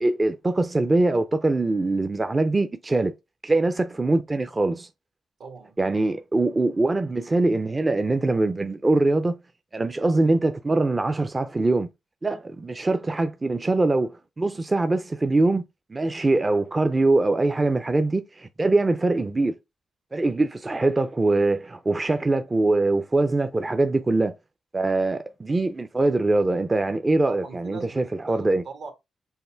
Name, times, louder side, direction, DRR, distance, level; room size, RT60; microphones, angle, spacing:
voice 1, 0.0-3.1 3.4-4.9 5.8-9.4 9.7-11.9 12.2-15.6 15.9-19.6 20.1-24.3 24.7-28.6, right 2 dB, 25° right, 0.4 m, -23 dB
voice 2, 5.4-5.8 27.3-28.9, right 5 dB, 75° right, 1.5 m, -40 dB
5.6 x 2.1 x 4.4 m
cardioid pair, 95°, 0 cm